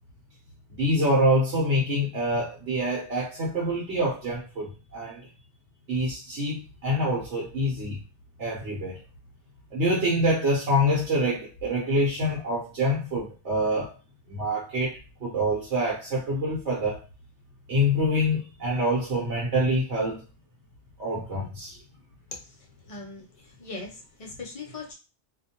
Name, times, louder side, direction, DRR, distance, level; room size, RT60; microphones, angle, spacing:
voice 1, 0.8-5.2 5.9-8.0 8.4-9.0 9.7-13.9 14.3-17.0 17.7-20.2 21.0-21.8, equal, 75° right, -4 dB, 1.2 m, -26 dB
voice 2, 22.9-24.9, left 3 dB, 40° left, -1 dB, 0.5 m, -40 dB
2.5 x 2.2 x 2.8 m, 0.32 s
omnidirectional pair, 1.2 m